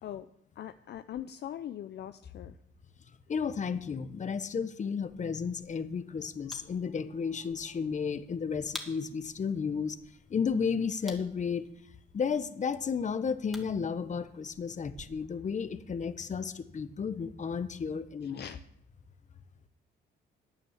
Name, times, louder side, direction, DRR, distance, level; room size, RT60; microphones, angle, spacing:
voice 1, 0.6-2.6 18.2-18.6, left 10 dB, 60° left, 11 dB, 0.5 m, -41 dB
voice 2, 3.3-10.0 10.3-11.6 12.1-18.5, left 6 dB, 40° left, 12 dB, 0.9 m, -33 dB
sound 1, 5.0-15.0, equal, ahead, 2.1 m, -52 dB
9.6 x 9.1 x 7.3 m, 0.76 s
cardioid pair, 90°, 20 cm